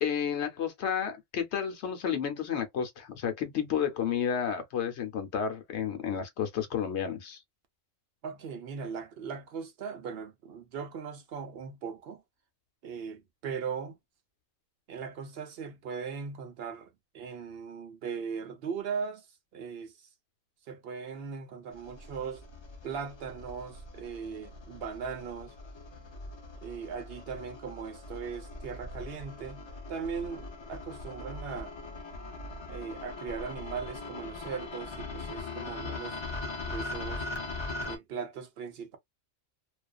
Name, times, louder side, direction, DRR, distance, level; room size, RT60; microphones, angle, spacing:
voice 1, 0.0-7.4, left 8 dB, 65° left, 0.9 m, -31 dB
voice 2, 8.2-12.2 12.8-14.0 14.9-19.3 19.5-19.9 20.7-22.4 22.8-25.6 26.6-29.6 29.9-31.7 32.7-36.2 36.6-37.3 37.8-39.0, right 6 dB, 60° right, 0.8 m, -39 dB
sound 1, 21.7-38.0, left 3 dB, 45° left, 0.3 m, -41 dB
2.4 x 2.3 x 2.3 m
omnidirectional pair, 1.4 m